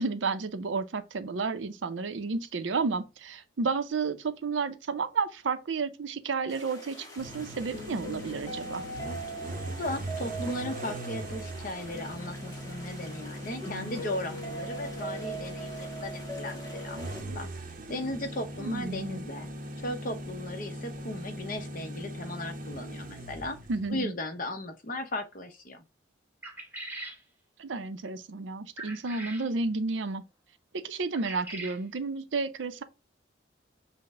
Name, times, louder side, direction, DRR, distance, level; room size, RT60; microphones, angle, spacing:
voice 1, 0.0-8.8 18.6-19.2 23.7-24.1 27.6-30.2 30.7-32.8, right 4 dB, 85° right, 0.5 m, -31 dB
sound 1, 6.5-17.2, right 1 dB, 20° left, 1.1 m, -41 dB
sound 2, 7.2-24.0, right 1 dB, 45° right, 0.6 m, -40 dB
voice 2, 9.7-19.5 19.8-23.6 23.9-25.9, left 1 dB, 45° left, 0.8 m, -37 dB
sound 3, 26.4-27.2 28.8-29.5 31.2-31.8, right 2 dB, 10° right, 0.8 m, -41 dB
5.8 x 2.1 x 3.6 m
head